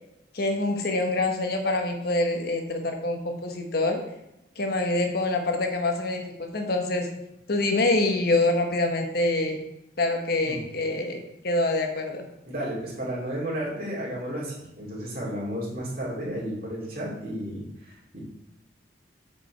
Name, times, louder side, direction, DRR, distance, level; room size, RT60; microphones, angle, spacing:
voice 1, 0.3-4.0 4.6-7.1 7.5-9.6 10.0-12.2, left 2 dB, 55° left, 3 dB, 1.1 m, -25 dB
voice 2, 12.4-18.2, equal, 50° right, -5 dB, 2.4 m, -33 dB
7.5 x 5.3 x 4.4 m, 0.88 s
head